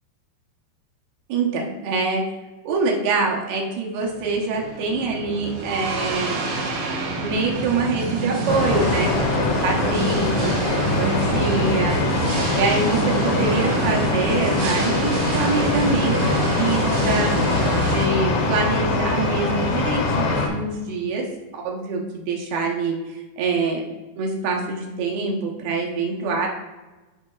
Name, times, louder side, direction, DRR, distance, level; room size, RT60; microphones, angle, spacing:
voice 1, 1.3-2.3 2.6-6.4 7.2-12.0 12.5-17.6 17.9-21.3 21.5-23.8 24.2-26.5, right 4 dB, 70° right, -1 dB, 2.6 m, -25 dB
sound 1, 4.0-18.1, right 2 dB, 90° right, 4.0 m, -27 dB
sound 2, 8.5-20.5, left 3 dB, 80° left, 3.3 m, -23 dB
13.0 x 5.5 x 2.3 m, 1.2 s
omnidirectional pair, 5.0 m